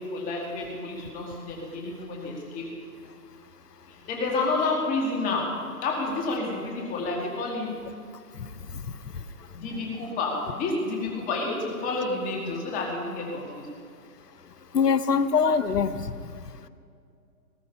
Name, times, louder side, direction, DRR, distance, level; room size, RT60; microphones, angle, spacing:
voice 1, 0.0-2.7 4.1-5.5 5.8-7.7 9.5-13.6, left 3 dB, 15° left, -1 dB, 2.4 m, -29 dB
voice 2, 8.4-8.9 9.1-9.2 14.7-16.1, left 6 dB, 90° left, 13 dB, 1.0 m, -24 dB
19.5 x 12.0 x 5.5 m, 2.4 s
hypercardioid pair, 145°, 47 cm